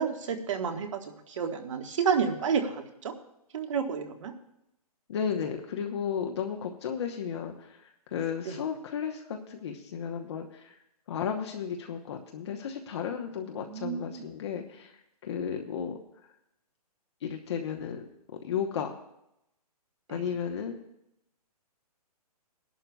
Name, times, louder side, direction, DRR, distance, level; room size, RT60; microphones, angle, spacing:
voice 1, 0.0-3.1 3.5-4.3 8.4-8.6 13.5-14.3 20.1-20.3, right 6 dB, 50° right, 5 dB, 1.5 m, -31 dB
voice 2, 5.1-10.8 11.1-14.9 15.2-16.0 17.2-18.0 18.4-18.9 20.1-20.8, left 7 dB, 45° left, 2 dB, 1.0 m, -34 dB
18.5 x 11.5 x 2.3 m, 0.81 s
hypercardioid pair, 160°, 20 cm